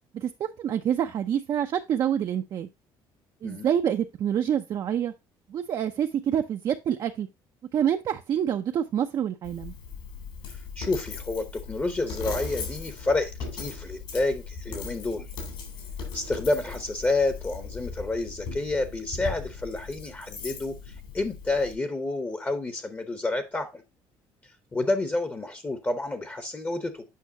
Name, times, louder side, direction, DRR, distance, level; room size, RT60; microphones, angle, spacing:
voice 1, 0.1-2.7 3.4-5.1 5.5-7.3 7.7-9.7, right 9 dB, 45° right, 0.5 m, -27 dB
Coin (dropping), 9.4-21.7, left 5 dB, 70° left, 3.7 m, -38 dB
voice 2, 10.8-15.3 16.1-23.8 24.7-27.0, left 2 dB, 20° left, 0.8 m, -29 dB
8.4 x 5.5 x 2.7 m
cardioid pair, 140°, 9 cm